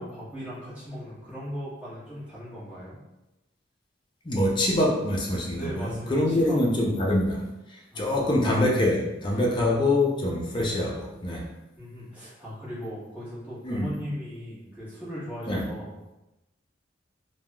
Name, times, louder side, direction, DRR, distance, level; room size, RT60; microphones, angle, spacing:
voice 1, 0.0-3.0 5.5-6.6 7.9-8.4 11.8-16.1, equal, 10° right, -11 dB, 1.2 m, -38 dB
voice 2, 4.2-7.4 7.7-11.5 13.6-13.9 15.5-15.7, left 1 dB, 25° left, -1 dB, 0.5 m, -25 dB
3.4 x 2.3 x 2.2 m, 0.96 s
head